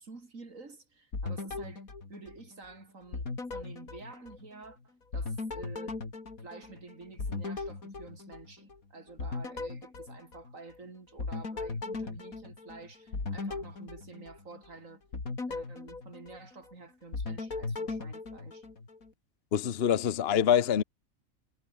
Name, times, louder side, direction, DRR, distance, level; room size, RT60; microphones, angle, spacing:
voice 1, 0.0-6.0 6.4-15.1 15.5-18.7, right 3 dB, 70° right, 3.4 m, -50 dB
sound 1, 1.1-2.7 3.1-4.7 5.1-8.8 9.2-10.8 11.2-14.7 15.1-16.7 17.1-19.1, left 3 dB, 90° left, 3.8 m, -38 dB
voice 2, 19.5-20.8, left 9 dB, 50° left, 1.1 m, -25 dB
omnidirectional pair, 1.4 m